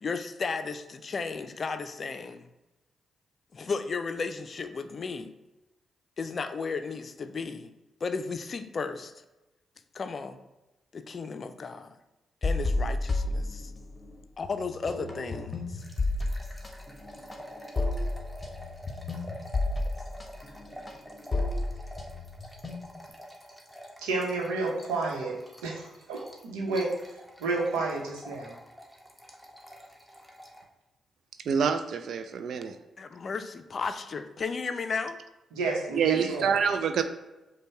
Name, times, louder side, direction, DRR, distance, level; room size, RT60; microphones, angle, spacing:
voice 1, 0.0-2.5 3.5-5.3 6.2-7.7 8.0-9.1 9.9-10.4 10.9-11.9 12.4-13.7 14.4-15.8 33.0-35.2, left 4 dB, 50° left, 9 dB, 0.4 m, -34 dB
sound 1, 12.4-14.1 14.4-23.1, left 2 dB, 30° left, 0.9 m, -31 dB
sound 2, 15.8-30.6, equal, ahead, 1.0 m, -47 dB
voice 2, 24.0-26.9 27.4-28.6 35.5-36.6, right 3 dB, 85° right, -1 dB, 0.8 m, -31 dB
voice 3, 31.5-32.8 36.0-37.0, right 6 dB, 70° right, 9 dB, 0.3 m, -26 dB
5.2 x 2.2 x 4.6 m, 1.0 s
hypercardioid pair, 40°, 0 cm